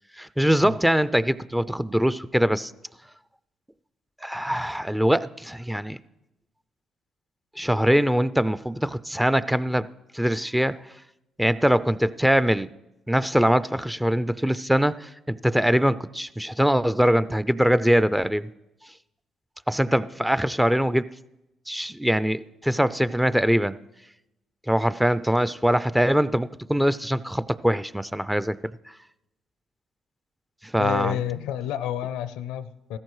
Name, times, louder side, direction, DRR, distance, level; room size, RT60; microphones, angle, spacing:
voice 1, 0.2-2.7 4.2-6.0 7.6-9.9 10.1-10.8 11.4-12.7 13.1-18.5 19.7-21.1 21.7-23.8 24.7-28.6 30.7-31.2, equal, 5° right, 16 dB, 0.4 m, -22 dB
voice 2, 30.8-33.0, left 11 dB, 85° left, 14 dB, 0.5 m, -30 dB
15.5 x 14.0 x 3.2 m, 0.92 s
supercardioid pair, 60°, 0 cm